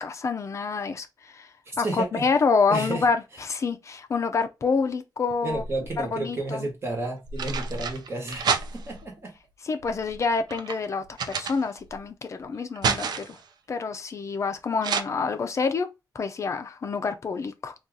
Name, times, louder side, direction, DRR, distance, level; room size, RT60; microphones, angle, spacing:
voice 1, 0.0-1.5 1.8-3.2 3.5-5.6 6.1-6.7 9.7-11.0 11.3-13.4 13.7-15.9 16.2-17.7, left 4 dB, 45° left, 0.4 m, -27 dB
voice 2, 1.6-2.3 2.7-3.4 5.4-9.3, right 2 dB, 35° right, 1.1 m, -32 dB
sound 1, 5.3-6.1 7.0-9.1 9.8-12.0 12.4-13.5 14.8-15.0, right 5 dB, 75° right, 0.4 m, -30 dB
2.7 x 2.3 x 3.5 m
wide cardioid pair, 165°, 7 cm